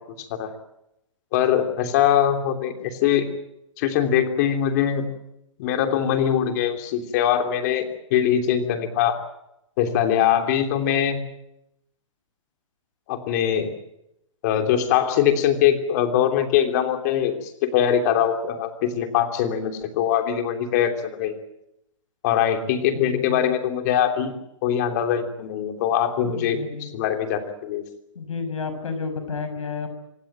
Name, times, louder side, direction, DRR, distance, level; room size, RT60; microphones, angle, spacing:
voice 1, 0.2-0.5 1.3-3.3 3.8-5.1 5.6-7.8 8.1-9.2 9.8-11.2 13.1-13.7 14.4-21.4 22.2-24.3 24.6-27.8, left 9 dB, 35° left, 5 dB, 3.1 m, -22 dB
voice 2, 22.9-23.4 26.2-26.9 28.1-29.9, left 5 dB, 90° left, 9 dB, 6.5 m, -31 dB
26.0 x 17.5 x 9.1 m, 0.85 s
hypercardioid pair, 165°, 16 cm